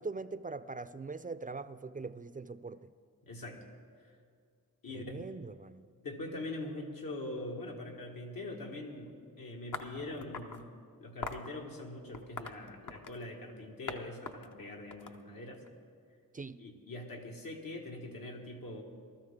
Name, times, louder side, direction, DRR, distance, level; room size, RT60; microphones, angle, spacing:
voice 1, 0.0-2.9 4.9-5.9 16.3-16.6, right 3 dB, 25° right, 14 dB, 0.4 m, -42 dB
voice 2, 3.3-3.6 4.8-5.2 6.0-9.1 9.4-10.7 11.0-15.6 16.6-18.8, left 2 dB, 80° left, 0 dB, 2.0 m, -43 dB
sound 1, 9.7-10.6 11.2-11.5 12.1-13.3 13.9-14.0 14.3-15.7, left 4 dB, 60° left, 0.9 m, -42 dB
19.5 x 13.0 x 3.7 m, 2.2 s
cardioid pair, 70°, 35 cm